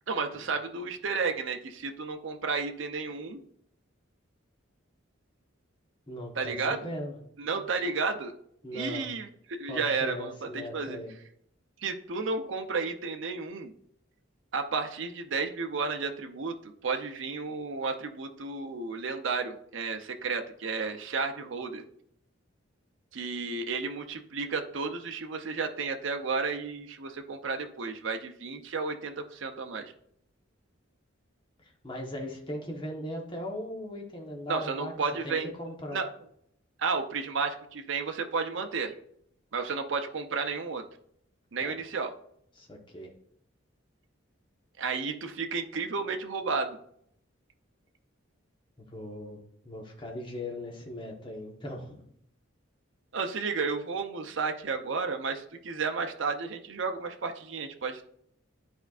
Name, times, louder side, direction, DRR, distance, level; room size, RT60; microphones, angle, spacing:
voice 1, 0.1-3.4 6.4-6.8 7.4-8.3 8.7-11.0 11.8-13.7 14.5-21.8 23.1-29.9 34.5-35.5 35.9-36.1 36.8-38.9 39.5-40.8 41.5-42.1 44.8-46.8 53.1-58.0, right 4 dB, 65° right, 5 dB, 0.6 m, -32 dB
voice 2, 6.1-7.2 8.6-9.1 9.7-11.1 31.6-34.9 35.2-36.0 41.6-41.7 42.6-43.1 48.8-52.1, left 1 dB, 25° left, 0 dB, 1.1 m, -39 dB
10.5 x 4.5 x 2.4 m, 0.70 s
head